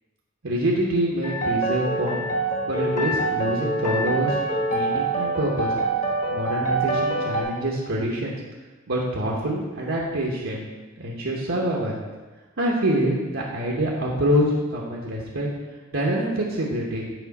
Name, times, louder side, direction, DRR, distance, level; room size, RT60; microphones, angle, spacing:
voice 1, 0.4-2.2 2.7-4.4 4.6-5.7 6.3-8.3 8.9-10.7 11.0-12.0 12.6-14.4 14.7-15.5 15.9-17.0, right 1 dB, 75° right, -4 dB, 1.1 m, -25 dB
sound 1, 1.2-7.4, right 2 dB, 35° left, 1.2 m, -25 dB
8.1 x 5.2 x 4.1 m, 1.2 s
head